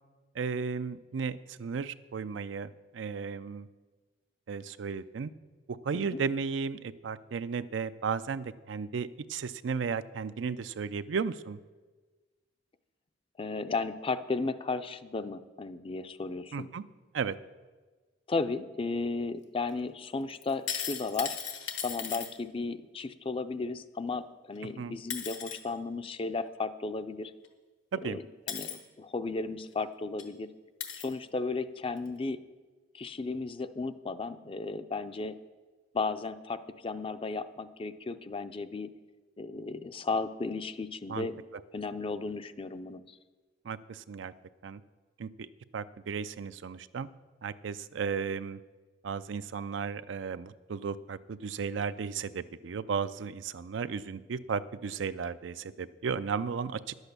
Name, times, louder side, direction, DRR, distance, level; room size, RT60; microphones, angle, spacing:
voice 1, 0.3-3.7 4.5-5.3 5.7-11.6 16.5-16.8 17.1-17.4 24.8-25.0 27.9-28.2 41.1-41.3 43.6-44.3 44.6-44.8 45.2-45.5 45.7-47.1 47.4-48.6 49.0-56.8, right 5 dB, 85° right, 13 dB, 0.4 m, -34 dB
voice 2, 13.4-16.7 18.3-21.4 21.8-27.3 28.0-28.2 28.5-30.5 31.0-32.4 32.9-35.4 35.9-38.9 39.4-41.4 41.7-43.0, left 3 dB, 30° left, 11 dB, 0.5 m, -34 dB
sound 1, 20.4-22.3 24.6-24.7 25.1-25.6 27.4-27.5 28.5-28.8 29.7-29.8 30.2-30.3 30.8-31.1 32.0-32.1, left 8 dB, 80° left, 1.4 m, -36 dB
10.5 x 8.1 x 6.8 m, 1.3 s
head